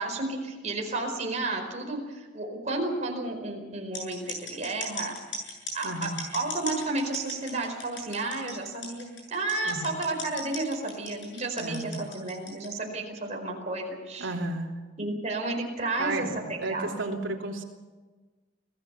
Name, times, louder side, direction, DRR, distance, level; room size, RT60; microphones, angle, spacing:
voice 1, 0.0-5.1 5.7-14.3 15.0-16.3 16.7-16.9, right 2 dB, 35° right, 1 dB, 4.7 m, -32 dB
sound 1, 3.9-12.7, left 2 dB, 65° left, 7.8 m, -37 dB
voice 2, 5.8-6.2 9.6-9.9 11.6-12.0 14.2-14.8 16.0-17.6, right 2 dB, 80° right, 1 dB, 3.3 m, -33 dB
26.5 x 16.0 x 7.0 m, 1.3 s
head